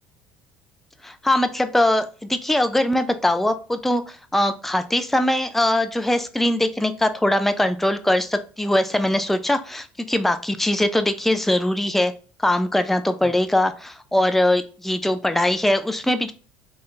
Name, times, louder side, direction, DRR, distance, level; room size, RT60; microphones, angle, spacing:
voice 1, 1.0-12.1 12.4-16.3, left 1 dB, 5° left, 8 dB, 0.5 m, -21 dB
3.4 x 2.5 x 3.8 m, 0.36 s
supercardioid pair, 95°, 5 cm